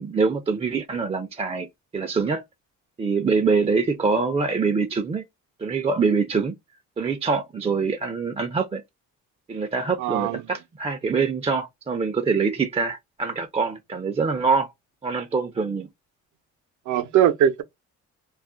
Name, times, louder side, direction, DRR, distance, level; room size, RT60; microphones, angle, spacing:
voice 1, 0.0-1.7 1.9-2.4 3.0-5.2 5.6-6.5 7.0-8.8 9.5-14.7 15.0-15.9, right 4 dB, 20° right, 0.4 m, -24 dB
voice 2, 10.0-10.4 16.9-17.6, right 10 dB, 75° right, 0.6 m, -20 dB
2.4 x 2.1 x 3.6 m
cardioid pair, 90°, 30 cm